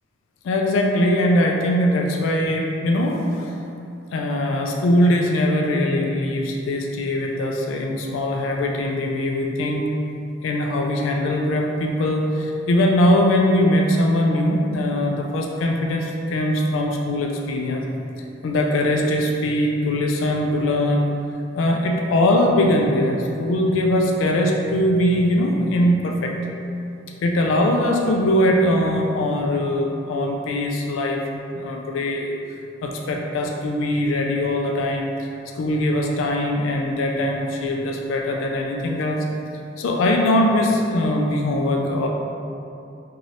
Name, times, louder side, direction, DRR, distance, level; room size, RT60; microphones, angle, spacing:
voice 1, 0.4-3.5 4.1-9.9 10.4-17.9 18.4-21.1 21.6-26.3 27.2-32.3 32.8-39.2 39.8-42.1, left 1 dB, 80° left, 1 dB, 0.3 m, -21 dB
3.1 x 2.6 x 2.6 m, 2.7 s
head